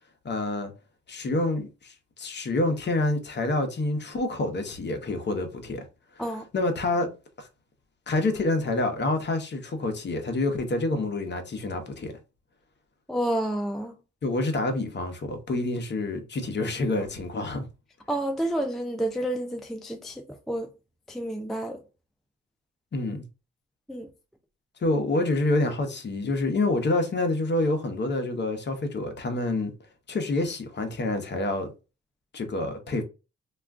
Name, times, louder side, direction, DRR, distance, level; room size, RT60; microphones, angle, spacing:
voice 1, 0.2-0.7 1.1-5.9 6.5-7.1 7.4-7.5 8.1-12.1 14.2-17.7 22.9-23.2 24.8-29.7 30.1-31.7 32.3-33.0, left 2 dB, 35° left, 0.8 m, -27 dB
voice 2, 13.1-13.9 18.1-20.7 21.1-21.8 23.9-24.1, right 1 dB, ahead, 0.3 m, -29 dB
2.3 x 2.3 x 3.4 m
cardioid pair, 80°, 29 cm